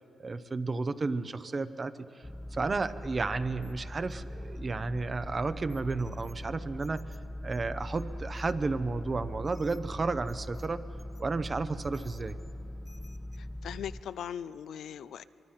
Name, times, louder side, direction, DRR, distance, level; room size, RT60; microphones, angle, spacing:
voice 1, 0.2-1.9 2.5-10.8 11.2-12.4, right 3 dB, 35° right, 12 dB, 0.8 m, -32 dB
sound 1, 2.2-14.0, left 1 dB, 10° left, 0.4 m, -41 dB
voice 2, 13.4-15.2, left 9 dB, 85° left, 15 dB, 0.5 m, -40 dB
24.5 x 23.0 x 5.8 m, 2.9 s
cardioid pair, 85°, 0 cm